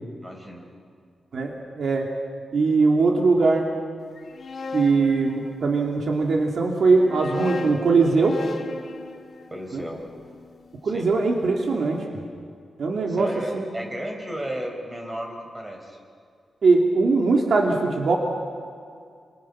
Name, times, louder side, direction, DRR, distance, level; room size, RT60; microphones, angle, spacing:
voice 1, 0.2-0.7 9.5-10.0 10.8-11.1 13.1-16.0, right 1 dB, 15° right, 2 dB, 4.6 m, -33 dB
voice 2, 1.3-2.1 2.5-3.7 4.7-8.4 9.7-9.8 10.8-12.1 12.8-13.3 13.5-13.7 16.6-18.2, right 3 dB, 60° right, 1 dB, 2.6 m, -21 dB
sound 1, 4.2-6.1 6.8-11.0, left 3 dB, 50° left, 2.1 m, -37 dB
28.5 x 27.0 x 6.1 m, 2.3 s
wide cardioid pair, 140°, 0 cm